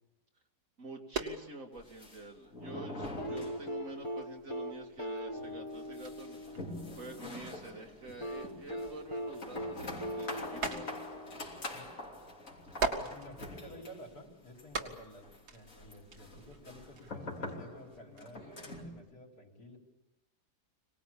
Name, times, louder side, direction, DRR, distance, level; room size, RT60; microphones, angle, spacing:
voice 1, 0.8-6.4 7.0-10.9, right 2 dB, 55° right, 3 dB, 2.9 m, -48 dB
sound 1, 1.1-1.7 2.1-3.7 4.2-4.4 4.6-4.8 5.1-5.2 5.5-9.5 9.9-11.3 11.6-11.7 12.5-14.0 14.5-18.8, right 4 dB, 75° right, 2.6 m, -41 dB
sound 2, 1.7-4.1 4.4-4.5 4.8-4.9 5.3-19.0, left 2 dB, 55° left, 3.6 m, -45 dB
sound 3, 3.2-7.3 8.2-11.8 13.2-13.3, equal, 20° left, 1.6 m, -40 dB
voice 2, 13.0-15.3 15.5-19.8, equal, 70° left, 0 dB, 4.7 m, -52 dB
25.5 x 19.5 x 8.7 m, 1.1 s
omnidirectional pair, 1.7 m